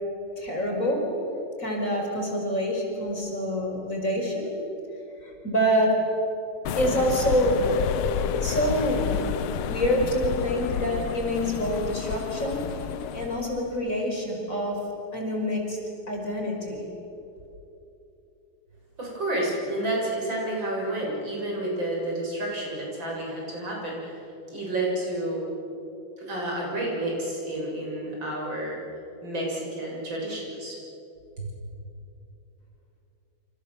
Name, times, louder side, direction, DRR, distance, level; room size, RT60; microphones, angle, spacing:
voice 1, 0.4-1.0 1.6-4.5 5.2-6.0 6.8-7.7 8.2-9.3 9.7-12.6 13.1-14.8 15.1-15.8 16.1-16.9, equal, 35° left, 0 dB, 5.6 m, -26 dB
sound 1, 6.7-13.6, left 9 dB, 80° left, 1.7 m, -30 dB
voice 2, 19.0-24.2 24.5-25.4 26.2-28.8 29.2-30.8 31.4-31.5, right 1 dB, 60° right, -2 dB, 7.7 m, -30 dB
28.5 x 27.0 x 7.3 m, 2.9 s
omnidirectional pair, 2.4 m